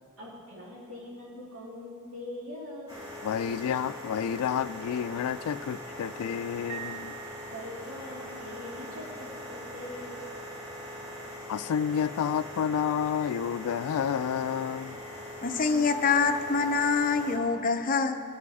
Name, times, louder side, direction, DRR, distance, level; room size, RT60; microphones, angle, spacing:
voice 1, 0.2-3.0 7.4-10.2, left 1 dB, 65° right, 2.2 m, -42 dB
sound 1, 2.9-17.4, equal, 15° right, 2.1 m, -42 dB
voice 2, 3.2-7.2 11.5-15.0, left 8 dB, 80° left, 0.3 m, -30 dB
Piano, 6.7-8.1, right 11 dB, 35° right, 0.8 m, -44 dB
voice 3, 15.4-18.2, left 5 dB, 40° left, 0.6 m, -25 dB
19.5 x 8.4 x 4.8 m
head